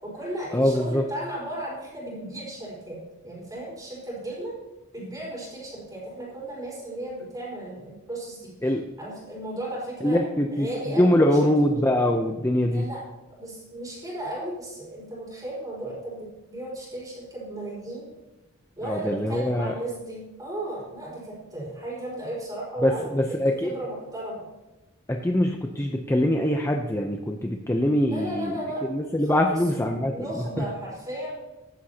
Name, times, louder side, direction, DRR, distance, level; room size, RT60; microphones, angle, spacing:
voice 1, 0.0-3.0 3.2-4.6 4.9-8.5 9.0-11.4 12.7-13.0 13.3-18.1 18.8-23.2 23.6-24.5 28.1-28.8 29.3-29.6 30.0-31.3, right 1 dB, 15° right, -5 dB, 4.8 m, -35 dB
voice 2, 0.5-1.0 8.6-8.8 10.0-12.9 18.8-19.8 22.8-23.7 25.1-28.6 28.9-30.6, left 1 dB, 10° left, 2 dB, 0.6 m, -23 dB
15.0 x 11.5 x 2.9 m, 1.1 s
head